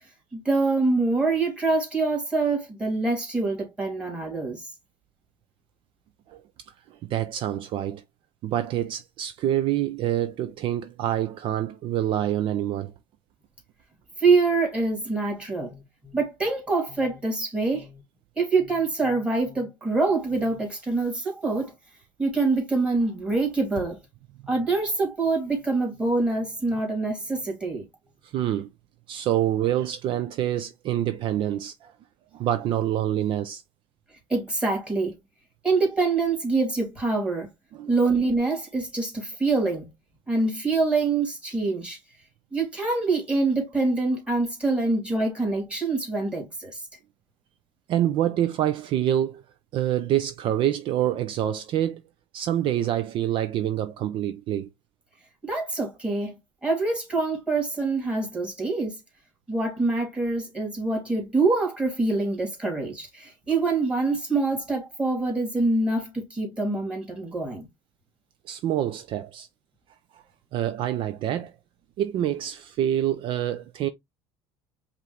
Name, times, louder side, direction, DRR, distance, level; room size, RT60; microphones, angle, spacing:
voice 1, 0.3-4.7 14.2-18.0 18.4-21.7 22.2-24.0 24.5-27.9 34.3-35.1 35.6-37.5 37.9-39.9 40.3-42.0 42.5-46.9 55.4-59.0 59.5-67.7, right 3 dB, 10° right, 2.5 m, -25 dB
voice 2, 6.9-8.0 8.4-12.9 28.2-28.7 29.1-31.9 32.3-33.6 37.8-37.9 47.9-49.4 49.7-52.0 52.3-54.7 68.5-69.5 70.1-70.2 70.5-71.5 72.0-73.9, right 11 dB, 50° right, 0.5 m, -26 dB
5.3 x 2.6 x 3.3 m
cardioid pair, 125°, 11 cm